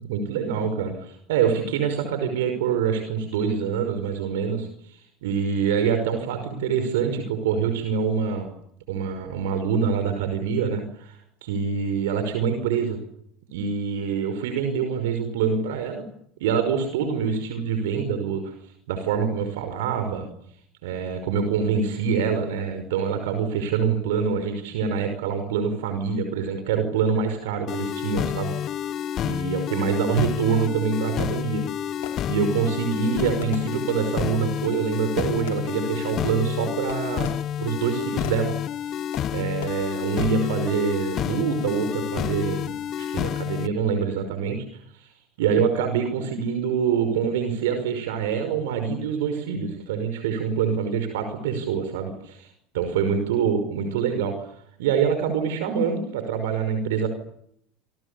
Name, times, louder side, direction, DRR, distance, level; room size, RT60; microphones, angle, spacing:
voice 1, 0.1-8.5 8.9-13.0 13.5-16.0 16.4-18.5 18.9-20.2 20.8-28.5 29.2-31.6 32.3-37.3 37.6-38.5 38.8-38.9 39.3-42.7 43.0-45.1 45.4-54.5 54.8-57.1, right 6 dB, 70° right, 7 dB, 5.5 m, -25 dB
sound 1, 27.7-43.7, left 10 dB, 45° left, 1.4 m, -29 dB
Fireworks, 31.5-32.7 33.4-34.3 35.2-35.9 36.9-37.8 38.2-38.7 39.1-39.7, left 10 dB, 70° left, 4.9 m, -42 dB
27.5 x 27.5 x 7.1 m, 0.71 s
hypercardioid pair, 75°, 0 cm